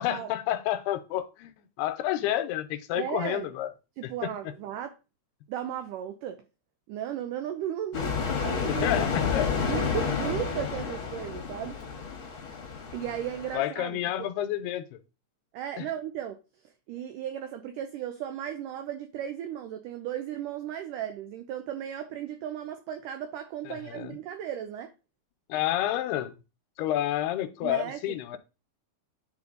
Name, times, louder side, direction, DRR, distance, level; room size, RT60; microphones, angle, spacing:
voice 1, 0.0-1.5 1.8-3.7 4.0-4.3 7.9-8.1 8.7-9.5 13.5-15.0 15.8-15.9 23.7-24.1 25.5-26.3 26.8-28.4, left 12 dB, 85° left, 2.7 m, -30 dB
voice 2, 3.0-3.5 4.0-5.0 5.5-6.4 6.9-8.1 8.4-8.9 9.7-11.8 12.9-14.3 15.5-16.4 16.9-24.9 27.6-28.4, right 10 dB, 90° right, 1.8 m, -35 dB
sound 1, 7.9-13.6, left 5 dB, 55° left, 1.5 m, -30 dB
10.5 x 4.1 x 3.8 m
omnidirectional pair, 4.6 m